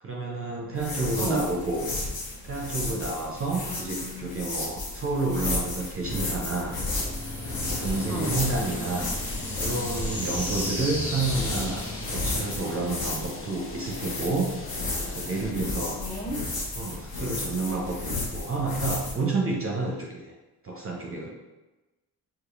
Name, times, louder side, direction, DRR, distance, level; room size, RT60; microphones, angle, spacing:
voice 1, 0.0-1.9 2.4-6.8 7.6-9.1 9.6-16.0 16.8-20.3 20.6-21.3, right 3 dB, 35° right, -1 dB, 0.6 m, -30 dB
Scratching skin, 0.8-19.1, left 2 dB, 60° left, 1.0 m, -33 dB
voice 2, 3.6-4.5 8.1-8.4 15.9-16.4, right 1 dB, 10° left, -2 dB, 1.0 m, -33 dB
sound 1, 6.9-13.8, left 1 dB, 85° left, 1.4 m, -35 dB
sound 2, 8.2-15.5, left 4 dB, 30° left, 0.6 m, -42 dB
4.1 x 2.8 x 2.4 m, 1.1 s
supercardioid pair, 60°, 40 cm